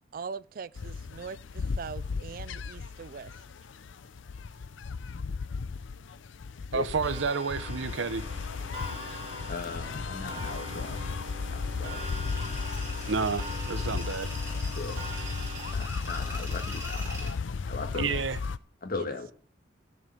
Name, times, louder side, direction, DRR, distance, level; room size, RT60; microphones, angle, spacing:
voice 1, 0.1-3.3 18.9-19.1, right 5 dB, 50° right, 0.4 m, -41 dB
sound 1, 0.8-18.6, left 5 dB, 85° left, 0.5 m, -35 dB
voice 2, 6.7-8.2 13.1-14.3 17.9-18.4, right 5 dB, 80° right, 0.7 m, -30 dB
Clock, 7.0-15.7, right 1 dB, 35° right, 3.1 m, -43 dB
voice 3, 9.5-11.0 11.5-12.1 14.7-15.0 15.7-17.3 17.7-18.2 18.8-19.3, left 3 dB, 50° left, 1.6 m, -38 dB
Tools, 12.0-17.3, right 1 dB, 15° right, 4.3 m, -43 dB
13.5 x 4.8 x 6.8 m
head